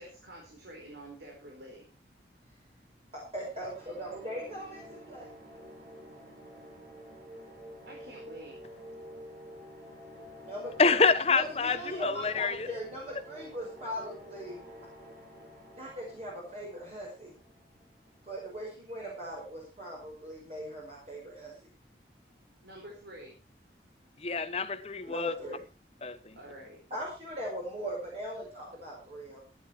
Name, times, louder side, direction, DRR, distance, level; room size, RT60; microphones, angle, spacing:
voice 1, 0.0-1.9 7.9-8.6 22.6-23.4 25.2-25.6 26.4-26.8, right 1 dB, 75° right, 4.5 m, -48 dB
voice 2, 3.1-5.3 10.4-14.6 15.7-17.3 18.2-21.5 25.1-25.6 26.9-29.5, equal, 35° right, 5.3 m, -40 dB
sound 1, 3.5-18.2, equal, 50° right, 6.4 m, -50 dB
voice 3, 10.8-12.7 24.2-25.3 26.0-26.4, left 4 dB, 35° left, 1.1 m, -27 dB
15.5 x 10.5 x 4.5 m
head